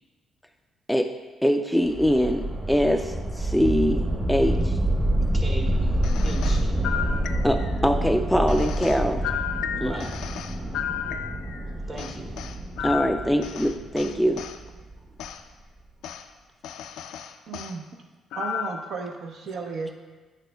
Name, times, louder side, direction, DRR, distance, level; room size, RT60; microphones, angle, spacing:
voice 1, 1.4-4.8 7.4-9.3 9.8-9.9 12.8-14.5, equal, ahead, 6 dB, 0.3 m, -23 dB
sound 1, 1.8-14.9, right 1 dB, 15° right, 0.9 m, -27 dB
voice 2, 5.0-6.8 9.7-10.1 11.9-12.4 14.9-15.3, right 2 dB, 40° right, 0 dB, 1.3 m, -39 dB
sound 2, 6.0-7.8 8.5-11.6 12.0-14.6 15.2-15.4 16.0-16.2 16.6-17.7 18.3-18.9, left 9 dB, 85° left, 0.3 m, -33 dB
voice 3, 17.5-17.8 18.3-19.9, right 4 dB, 75° right, 3 dB, 0.6 m, -34 dB
8.4 x 6.1 x 2.2 m, 1.3 s
cardioid pair, 90°, 0 cm